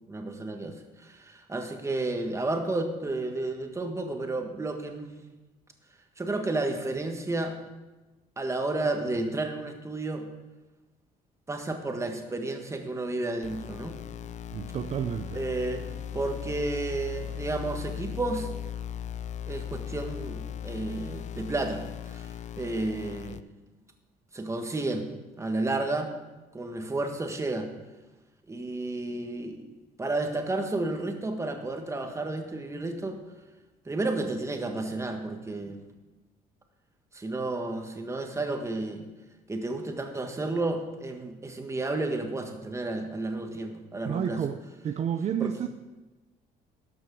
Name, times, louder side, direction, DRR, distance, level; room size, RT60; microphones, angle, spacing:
voice 1, 0.1-5.2 6.2-7.6 8.4-10.3 11.5-14.0 15.3-18.5 19.5-23.4 24.3-25.1 25.4-26.1 26.5-27.7 28.5-29.6 30.0-33.2 33.8-35.8 37.1-39.1 39.5-44.4 45.4-45.5, right 2 dB, 15° right, 4 dB, 1.5 m, -32 dB
sound 1, 13.4-23.4, left 9 dB, 45° left, 0.4 m, -38 dB
voice 2, 14.5-15.4 44.0-45.7, right 8 dB, 40° right, 8 dB, 0.5 m, -30 dB
12.5 x 6.2 x 6.1 m, 1.1 s
cardioid pair, 110°, 17 cm